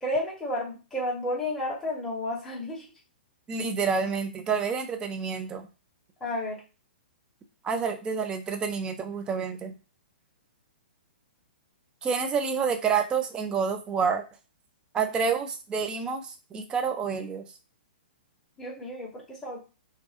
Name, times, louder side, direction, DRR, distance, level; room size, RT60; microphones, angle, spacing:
voice 1, 0.0-2.9 6.2-6.6 18.6-19.6, left 1 dB, 5° left, -5 dB, 0.9 m, -31 dB
voice 2, 3.5-5.7 7.6-9.7 12.0-14.2 14.9-17.4, right 6 dB, 15° right, 6 dB, 0.3 m, -28 dB
2.3 x 2.2 x 2.5 m, 0.32 s
figure-of-eight pair, 115°, 6 cm